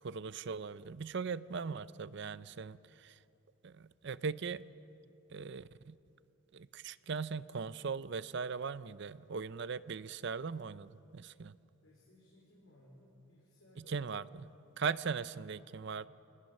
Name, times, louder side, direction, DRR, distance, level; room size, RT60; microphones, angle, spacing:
voice 1, 0.0-3.2 3.6-4.6 5.3-6.0 6.5-11.6 13.8-14.2 14.8-16.1, right 5 dB, 55° right, 16 dB, 0.5 m, -39 dB
voice 2, 11.8-14.2, left 1 dB, 75° left, -4 dB, 4.4 m, -61 dB
26.5 x 19.0 x 6.5 m, 2.9 s
head